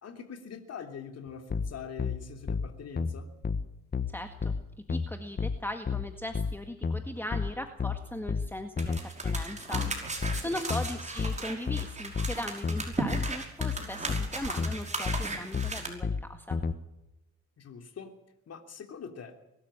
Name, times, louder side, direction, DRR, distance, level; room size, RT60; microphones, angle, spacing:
voice 1, 0.0-3.3 10.3-10.9 17.6-18.1 18.5-19.3, left 6 dB, 55° left, 6 dB, 3.3 m, -43 dB
sound 1, 1.5-16.8, left 5 dB, 35° left, 1.5 m, -32 dB
voice 2, 4.1-4.5 4.9-16.6, left 1 dB, 5° left, 6 dB, 1.8 m, -39 dB
sound 2, 8.8-15.9, right 3 dB, 25° right, 5.6 m, -36 dB
23.0 x 13.0 x 8.9 m, 0.90 s
cardioid pair, 90°, 30 cm